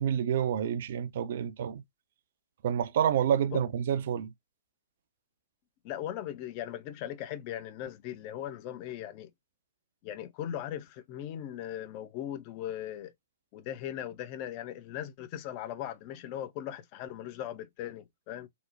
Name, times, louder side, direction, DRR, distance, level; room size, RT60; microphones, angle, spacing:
voice 1, 0.0-1.8 2.6-4.3, right 9 dB, 50° right, 0.3 m, -28 dB
voice 2, 5.8-9.3 10.0-13.1 13.5-18.5, left 11 dB, 35° left, 0.4 m, -39 dB
2.8 x 2.0 x 2.4 m
figure-of-eight pair, 115°, 0 cm